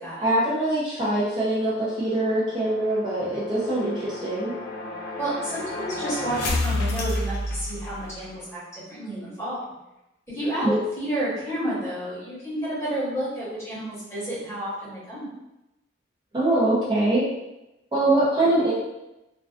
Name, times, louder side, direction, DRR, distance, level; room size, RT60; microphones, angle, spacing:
voice 1, 0.2-4.5 10.6-10.8 16.3-17.3 17.9-18.7, right 1 dB, 25° right, -8 dB, 0.5 m, -23 dB
sound 1, 1.5-8.3, left 2 dB, 55° left, 0.3 m, -31 dB
voice 2, 5.2-9.6 10.3-15.3, right 1 dB, 15° left, -9 dB, 0.9 m, -30 dB
2.3 x 2.3 x 2.3 m, 0.93 s
head